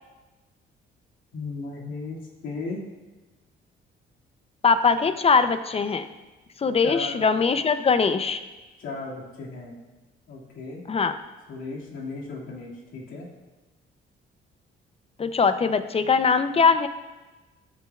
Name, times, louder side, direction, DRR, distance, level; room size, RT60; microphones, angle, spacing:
voice 1, 1.3-2.8 6.8-7.2 8.8-9.8 10.3-10.8 11.5-13.3, left 3 dB, 85° left, -5 dB, 2.2 m, -36 dB
voice 2, 4.6-6.1 6.6-8.4 10.9-11.2 15.2-16.9, left 5 dB, 30° left, 11 dB, 0.6 m, -21 dB
13.5 x 6.5 x 2.4 m, 1.2 s
cardioid pair, 90°, 20 cm